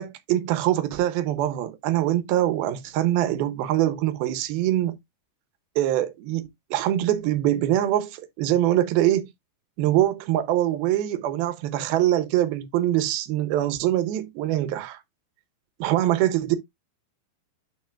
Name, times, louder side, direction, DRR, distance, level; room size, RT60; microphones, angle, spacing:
voice 1, 0.0-5.0 5.8-9.3 9.8-15.0 15.8-16.6, right 13 dB, 80° right, 2.7 m, -23 dB
10.5 x 5.3 x 2.4 m
omnidirectional pair, 4.3 m